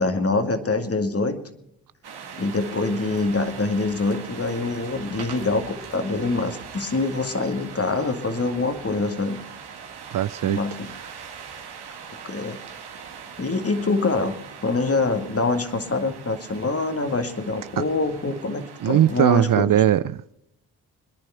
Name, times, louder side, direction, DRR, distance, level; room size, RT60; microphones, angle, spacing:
voice 1, 0.0-1.4 2.4-9.4 10.4-10.9 12.2-12.6 13.4-19.7, left 3 dB, 35° left, 2.1 m, -25 dB
sound 1, 2.0-19.6, right 6 dB, 75° right, 2.0 m, -41 dB
voice 2, 10.1-10.6 17.8-17.9 18.8-20.3, right 11 dB, 55° right, 0.5 m, -20 dB
21.5 x 10.5 x 5.7 m
supercardioid pair, 45°, 39 cm